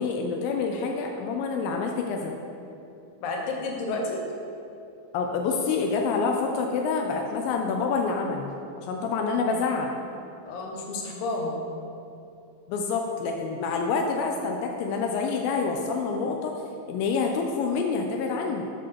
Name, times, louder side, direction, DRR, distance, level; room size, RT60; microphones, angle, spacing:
voice 1, 0.0-2.3 5.1-8.5 8.8-9.9 12.7-16.5 16.9-18.6, left 4 dB, 85° left, 2 dB, 2.3 m, -27 dB
voice 2, 3.2-4.2 10.5-11.6, left 2 dB, 70° left, -1 dB, 2.2 m, -31 dB
7.6 x 3.8 x 6.5 m, 2.7 s
omnidirectional pair, 4.1 m